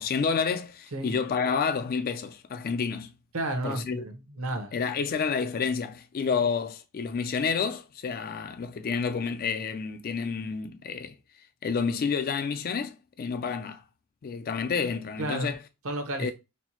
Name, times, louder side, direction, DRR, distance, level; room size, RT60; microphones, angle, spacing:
voice 1, 0.0-3.1 3.6-4.0 4.7-11.1 11.6-13.8 14.2-15.6 16.2-16.3, left 5 dB, 40° left, 0.3 m, -29 dB
voice 2, 3.3-4.7 15.2-15.5 15.8-16.3, right 1 dB, 70° right, 0.8 m, -32 dB
4.3 x 2.0 x 2.9 m
head